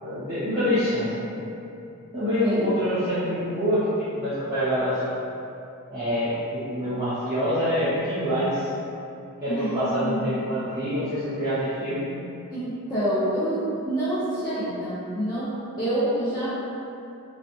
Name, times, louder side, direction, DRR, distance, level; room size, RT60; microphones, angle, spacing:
voice 1, 0.0-1.4 2.1-5.0 5.9-8.7 9.4-12.0, equal, 20° right, -14 dB, 0.8 m, -26 dB
voice 2, 9.5-10.4 12.5-16.5, right 1 dB, 20° left, -13 dB, 0.4 m, -27 dB
2.4 x 2.2 x 2.6 m, 2.7 s
head